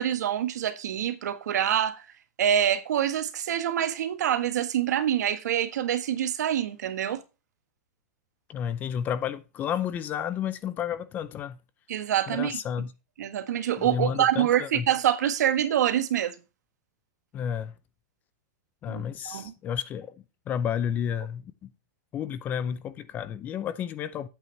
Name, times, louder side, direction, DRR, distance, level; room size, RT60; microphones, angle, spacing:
voice 1, 0.0-2.0 2.4-7.2 11.9-12.6 13.2-16.3 18.9-19.5, right 10 dB, 85° right, 1.4 m, -26 dB
voice 2, 8.5-11.6 12.3-12.9 13.8-14.9 17.3-17.7 18.8-20.2 20.5-21.7 22.1-24.3, left 8 dB, 20° left, 0.5 m, -31 dB
9.1 x 8.4 x 3.3 m
supercardioid pair, 170°, 9 cm